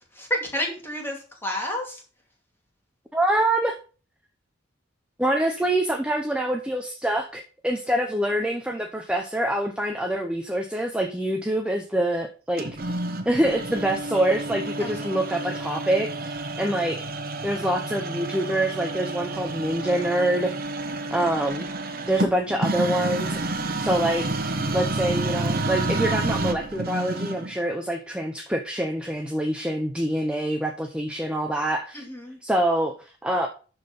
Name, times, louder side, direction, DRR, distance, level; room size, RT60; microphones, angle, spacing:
voice 1, 0.2-2.0 14.8-15.1 31.9-32.4, equal, 10° left, 0 dB, 2.6 m, -30 dB
voice 2, 3.1-3.7 5.2-12.7 13.3-17.0 17.4-20.5 21.1-21.7 22.0-23.4 23.8-24.3 24.7-32.0 32.4-33.5, right 1 dB, 5° right, 3 dB, 0.8 m, -25 dB
scanner NR, 12.6-27.6, right 2 dB, 50° right, 1.2 m, -29 dB
12.0 x 4.5 x 5.3 m, 0.37 s
head